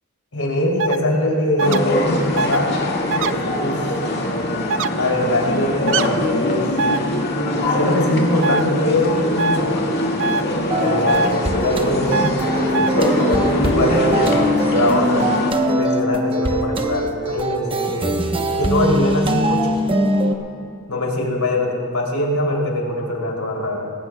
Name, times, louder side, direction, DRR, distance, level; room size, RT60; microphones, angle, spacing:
voice 1, 0.3-2.8 3.2-3.9 4.9-6.7 7.7-9.9 10.8-12.9 13.6-15.3 15.7-18.2 18.5-20.3 20.9-23.9, left 1 dB, 75° left, -1 dB, 3.0 m, -22 dB
sound 1, 0.8-1.0 1.6-1.8 2.4-2.6 3.1-3.3 4.7-4.9 5.9-6.1 6.8-7.0 8.4-8.6 9.4-9.6 10.2-10.4 11.1-11.3 12.1-12.3 12.7-12.9, right 4 dB, 60° right, 0.4 m, -21 dB
sound 2, 1.6-15.5, left 1 dB, 50° left, 2.0 m, -22 dB
sound 3, 10.7-20.4, right 1 dB, 25° right, 0.9 m, -22 dB
19.5 x 18.0 x 2.3 m, 2.5 s
head